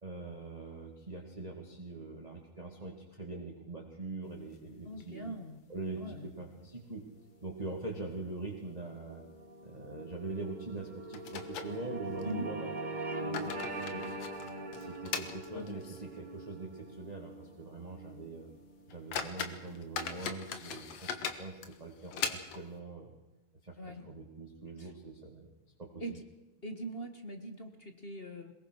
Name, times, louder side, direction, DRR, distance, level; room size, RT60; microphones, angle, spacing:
voice 1, 0.0-5.3 5.7-7.1 7.4-9.2 9.6-12.7 13.2-18.5 18.9-23.1 23.6-23.8 24.1-25.5 25.8-25.9, right 3 dB, 15° right, 0 dB, 1.9 m, -43 dB
sound 1, 4.4-5.4 5.7-5.8 6.1-6.2 6.9-7.3 7.6-7.8 8.4-8.6 8.9-9.1 10.4-10.5 11.1-12.3 13.0-16.2 16.5-16.6 17.2-17.3 17.7-17.9 18.4-18.5 18.9-22.8, left 7 dB, 60° left, 2.3 m, -40 dB
voice 2, 4.8-6.3 12.2-12.6 23.8-24.1 24.8-24.9 26.0-26.2 26.6-28.5, right 1 dB, 30° left, 6 dB, 1.2 m, -42 dB
sound 2, 7.4-20.0, right 2 dB, 35° right, 0.7 m, -43 dB
22.0 x 21.0 x 6.4 m, 1.1 s
omnidirectional pair, 3.5 m